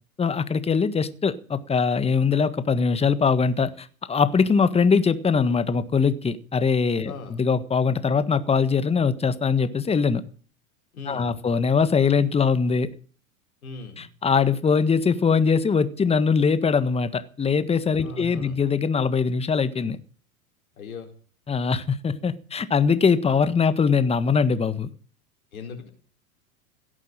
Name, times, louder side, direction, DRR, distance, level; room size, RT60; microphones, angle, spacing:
voice 1, 0.2-10.2 11.1-12.9 14.0-20.0 21.5-24.9, left 5 dB, 15° left, 12 dB, 1.5 m, -22 dB
voice 2, 7.0-7.4 10.9-11.4 13.6-14.1 18.0-18.6 20.8-21.1 25.5-25.9, left 4 dB, 80° left, 4 dB, 4.7 m, -38 dB
17.0 x 8.3 x 8.9 m, 0.43 s
hypercardioid pair, 95°, 42 cm